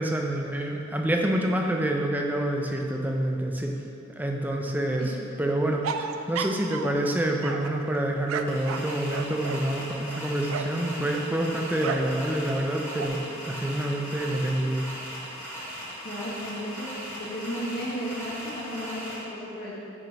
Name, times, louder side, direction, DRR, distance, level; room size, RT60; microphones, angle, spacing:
voice 1, 0.0-3.8 4.2-5.1 5.4-14.8, right 1 dB, 10° right, 1 dB, 0.4 m, -27 dB
sound 1, 5.8-7.1 7.4-10.8 11.8-12.2 12.5-13.1, right 6 dB, 80° right, 0.4 m, -34 dB
Rhythmic Clock Winding Background Noise, 8.5-19.1, equal, 10° left, 1.4 m, -38 dB
voice 2, 16.0-16.9 17.2-19.8, equal, 45° left, -8 dB, 1.4 m, -34 dB
6.1 x 4.9 x 5.0 m, 2.8 s
head